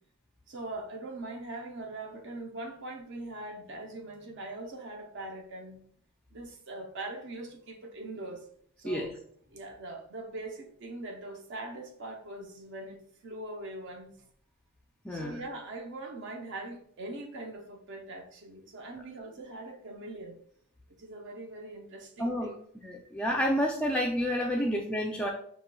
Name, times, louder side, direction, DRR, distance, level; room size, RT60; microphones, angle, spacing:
voice 1, 0.5-5.8 6.3-8.5 8.8-9.1 9.5-14.1 15.1-20.4 21.0-22.5, right 2 dB, 55° right, 0.6 m, -42 dB
voice 2, 15.0-15.4 22.2-22.5 22.8-25.3, equal, 5° left, 0.3 m, -29 dB
6.1 x 3.0 x 2.2 m
head